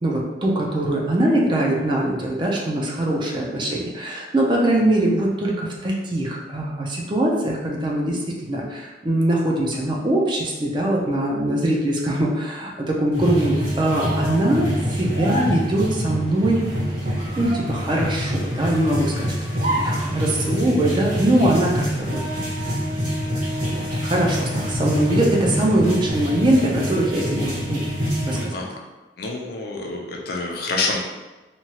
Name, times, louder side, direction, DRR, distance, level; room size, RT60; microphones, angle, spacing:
voice 1, 0.0-14.7 15.0-16.6 17.4-22.2 22.6-22.7 23.7-27.8 28.2-28.6, right 1 dB, 25° right, -2 dB, 0.4 m, -22 dB
sound 1, 13.1-28.4, equal, 55° right, 1.2 m, -25 dB
voice 2, 29.2-31.0, left 3 dB, 60° left, 0 dB, 0.5 m, -27 dB
2.9 x 2.2 x 2.8 m, 1.2 s
head